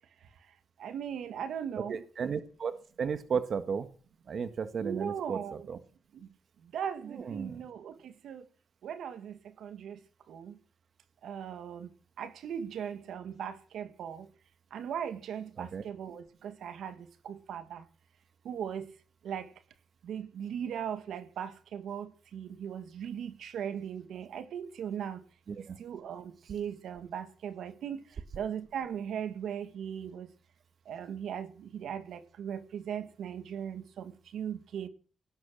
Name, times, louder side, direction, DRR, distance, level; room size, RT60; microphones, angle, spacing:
voice 1, 0.8-2.0 4.8-5.7 6.1-6.3 6.6-8.5 8.8-10.0 10.3-10.6 11.2-11.9 12.2-14.3 14.7-17.8 18.4-18.9 19.2-19.5 20.0-25.2 25.6-30.3 30.9-34.9, right 8 dB, 85° right, 2.0 m, -38 dB
voice 2, 1.9-2.7 3.0-3.9 4.3-5.8 7.1-7.6 15.6-15.8 25.5-25.8, right 6 dB, 65° right, 1.7 m, -34 dB
18.5 x 11.0 x 6.4 m
supercardioid pair, 55°, 0 cm